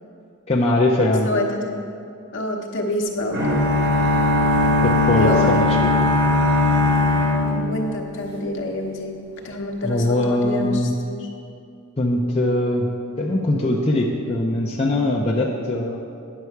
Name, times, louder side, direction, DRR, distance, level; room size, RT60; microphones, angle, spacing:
voice 1, 0.5-1.3 4.8-5.7 9.8-10.9 12.0-12.9 13.2-16.0, left 1 dB, 30° left, -3 dB, 0.6 m, -21 dB
voice 2, 1.2-1.7 2.3-3.8 5.2-5.7 7.4-9.1 9.4-11.3, left 1 dB, 60° left, 1 dB, 1.0 m, -26 dB
sound 1, 3.3-8.3, left 2 dB, 55° right, 1.6 m, -19 dB
9.7 x 6.7 x 4.6 m, 2.5 s
head